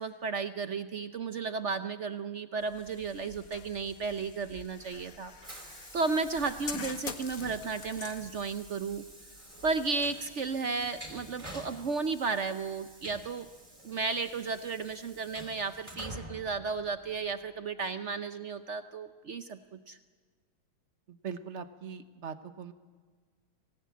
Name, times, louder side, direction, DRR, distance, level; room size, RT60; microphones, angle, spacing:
voice 1, 0.0-5.3 5.9-9.0 9.6-13.5 13.8-19.6 19.9-20.0, right 4 dB, 65° right, 10 dB, 0.7 m, -33 dB
sound 1, 2.6-10.5, left 6 dB, 45° left, 1.5 m, -46 dB
Train, 4.3-17.5, equal, 15° right, 3.9 m, -49 dB
voice 2, 21.2-22.7, right 6 dB, 45° right, 10 dB, 1.1 m, -41 dB
25.0 x 18.0 x 8.4 m, 1.5 s
omnidirectional pair, 2.2 m